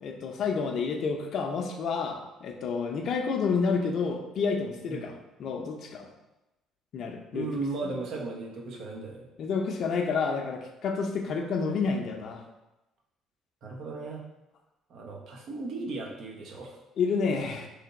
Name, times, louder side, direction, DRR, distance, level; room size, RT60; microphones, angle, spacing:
voice 1, 0.0-5.1 5.4-6.1 6.9-7.5 7.8-7.9 9.4-12.4 17.0-17.7, left 5 dB, 60° left, 3 dB, 0.6 m, -29 dB
voice 2, 7.3-9.3 13.6-14.2 14.9-16.8, right 3 dB, 65° right, 0 dB, 0.8 m, -36 dB
3.3 x 2.8 x 3.9 m, 0.98 s
supercardioid pair, 80°, 0 cm